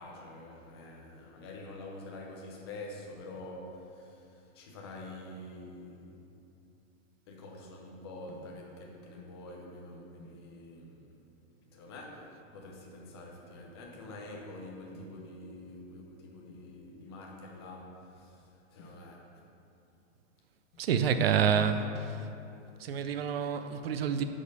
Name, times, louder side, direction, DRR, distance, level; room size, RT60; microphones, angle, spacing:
voice 1, 0.0-6.2 7.3-11.2 11.7-19.4 20.8-21.0, left 2 dB, 20° left, 0 dB, 0.6 m, -46 dB
voice 2, 20.8-22.2 22.8-24.2, right 7 dB, 50° right, 9 dB, 0.5 m, -28 dB
8.3 x 5.2 x 5.4 m, 2.7 s
supercardioid pair, 175°, 40 cm